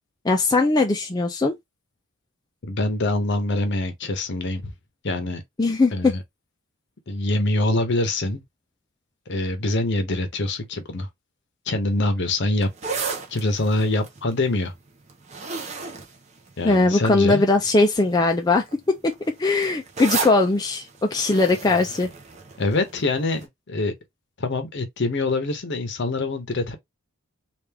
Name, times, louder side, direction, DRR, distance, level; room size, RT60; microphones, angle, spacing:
voice 1, 0.2-1.5 5.6-5.9 16.6-22.1, left 3 dB, 20° left, 0.4 m, -20 dB
voice 2, 2.6-4.7 5.0-5.4 5.9-6.2 7.1-8.4 9.3-11.1 11.7-12.7 13.3-14.7 16.6-17.4 22.6-23.9 24.4-26.7, left 2 dB, 55° left, 0.8 m, -24 dB
sound 1, 12.6-17.1 17.8-18.1 18.4-23.0 23.4-23.5, right 4 dB, 30° right, 0.8 m, -33 dB
3.4 x 2.5 x 3.3 m
head